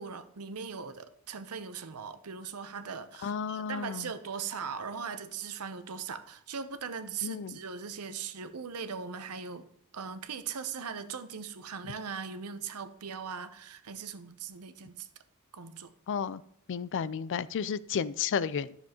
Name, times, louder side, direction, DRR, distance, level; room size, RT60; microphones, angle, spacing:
voice 1, 0.0-9.7 9.9-15.1 15.5-15.9, right 6 dB, 85° right, 0.8 m, -39 dB
voice 2, 3.2-4.1 7.2-7.6 16.1-16.4 16.7-18.8, left 7 dB, 55° left, 0.4 m, -32 dB
10.5 x 6.9 x 3.0 m
head